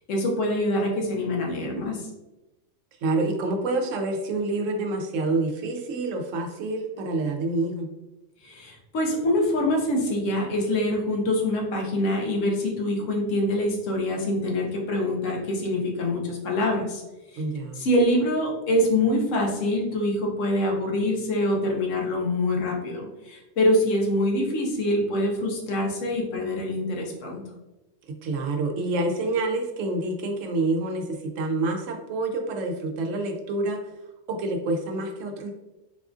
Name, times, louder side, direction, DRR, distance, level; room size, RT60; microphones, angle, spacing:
voice 1, 0.1-2.1 8.4-17.0 17.3-17.4 17.8-27.4, left 1 dB, 80° left, 0 dB, 1.1 m, -25 dB
voice 2, 3.0-7.9 17.4-17.8 28.2-33.8 34.3-35.5, right 2 dB, 90° right, 3 dB, 1.0 m, -27 dB
4.0 x 2.4 x 2.4 m, 1.0 s
omnidirectional pair, 1.3 m